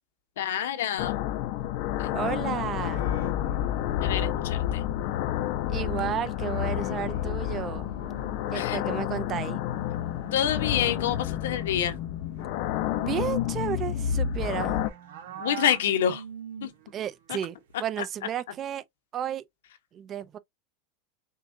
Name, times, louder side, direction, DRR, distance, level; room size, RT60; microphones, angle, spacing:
voice 1, 0.4-1.3 2.0-2.1 4.0-4.8 8.5-8.8 10.3-12.0 15.4-16.2 16.6-16.7 17.3-17.4, left 10 dB, 85° left, 1.0 m, -27 dB
sound 1, 1.0-14.9, left 11 dB, 60° left, 0.7 m, -29 dB
voice 2, 2.1-3.1 5.7-7.9 8.5-9.6 13.0-14.8 16.9-17.5 17.8-18.8 19.1-19.4 19.9-20.4, right 10 dB, 35° right, 0.6 m, -32 dB
sound 2, 2.1-4.9 5.2-5.3 5.6-17.0 17.3-17.7, right 8 dB, 75° right, 1.1 m, -46 dB
6.6 x 2.4 x 2.6 m
supercardioid pair, 125°, 0 cm